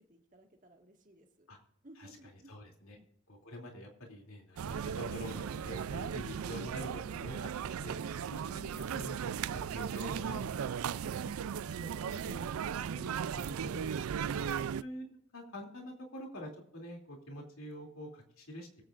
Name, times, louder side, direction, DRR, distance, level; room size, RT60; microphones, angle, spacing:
voice 1, 0.0-1.5 1.8-2.5 2.9-3.1, right 1 dB, 40° right, 3 dB, 1.9 m, -58 dB
voice 2, 2.5-3.0 3.3-7.9 8.4-10.5 11.1-11.3 12.1-12.4 12.9-13.3 13.6-13.8 14.8-15.0 15.3-18.8, equal, 80° left, 1 dB, 2.8 m, -46 dB
sound 1, 4.6-14.8, right 7 dB, 90° right, 0.4 m, -37 dB
24.5 x 8.7 x 2.5 m, 0.71 s
head